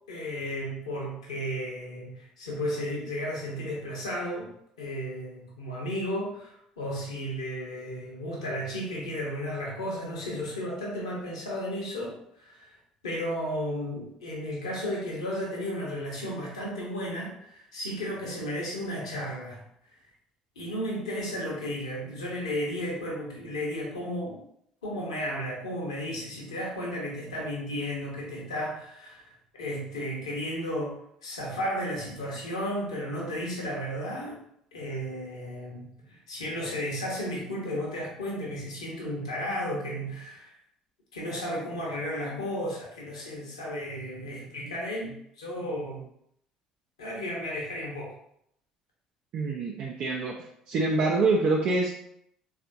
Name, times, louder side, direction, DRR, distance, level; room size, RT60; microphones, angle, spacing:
voice 1, 0.1-4.5 4.8-12.8 13.0-19.6 20.6-24.4 24.8-34.4 34.7-40.5 41.1-46.0 47.0-48.1, equal, 75° left, -3 dB, 0.8 m, -34 dB
voice 2, 49.3-50.3 50.7-51.9, right 3 dB, 50° right, -2 dB, 0.4 m, -25 dB
3.6 x 2.4 x 2.6 m, 0.72 s
figure-of-eight pair, 55°, 3 cm